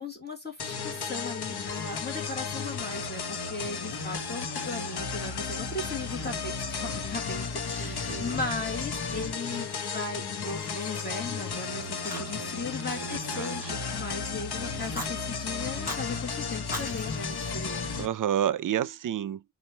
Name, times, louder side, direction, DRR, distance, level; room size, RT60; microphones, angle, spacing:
voice 1, 0.0-17.9, left 3 dB, 25° left, 1.4 m, -37 dB
sound 1, 0.6-18.1, left 5 dB, 75° left, 0.9 m, -34 dB
voice 2, 7.8-8.4 11.8-12.5 12.9-13.8 18.0-19.4, right 10 dB, 55° right, 0.5 m, -31 dB
Fire, 9.1-10.1 10.4-11.6 12.0-12.6 12.9-14.3 14.7-15.1 15.7-16.1 16.6-18.1, equal, 5° right, 2.4 m, -42 dB
4.3 x 2.5 x 4.3 m
wide cardioid pair, 90°, 39 cm